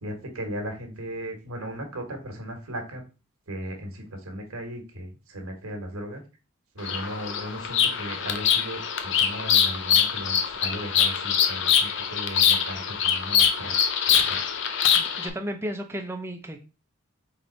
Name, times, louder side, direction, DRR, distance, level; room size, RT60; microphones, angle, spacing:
voice 1, 0.0-3.0 3.5-6.2 6.7-13.7 14.1-14.4, equal, 90° right, 4 dB, 1.3 m, -36 dB
Bird vocalization bird call bird song, 6.8-15.3, left 8 dB, 55° left, 0.5 m, -23 dB
voice 2, 14.9-16.6, equal, 10° right, 5 dB, 0.5 m, -33 dB
3.9 x 3.5 x 3.9 m, 0.32 s
head